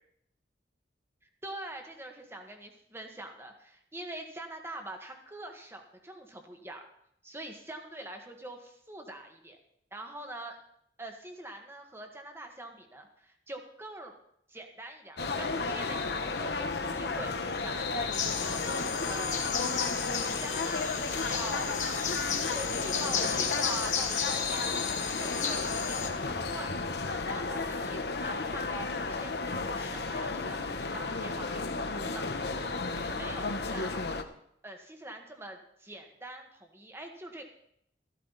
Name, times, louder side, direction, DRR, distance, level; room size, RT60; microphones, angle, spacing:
voice 1, 1.4-6.8 7.2-9.6 9.9-10.6 11.0-14.2 14.5-18.6 19.0-19.6 20.4-21.7 22.0-26.7 27.2-32.4 32.9-34.1 34.6-37.4, right 1 dB, 15° right, 4 dB, 1.6 m, -44 dB
sound 1, 15.2-34.2, left 3 dB, 65° left, 1.1 m, -33 dB
sound 2, 18.1-26.1, left 7 dB, 45° left, 1.6 m, -34 dB
sound 3, 20.8-21.0 21.5-21.7 22.2-22.4 22.9-23.1 23.6-23.8 24.3-24.5 25.0-25.2 25.7-25.9 26.4-26.6 27.1-27.3 27.8-28.0 28.5-28.7 29.2-29.4 29.9-30.1 30.6-30.8, equal, 45° right, 4.2 m, -57 dB
14.0 x 13.5 x 4.1 m, 0.72 s
head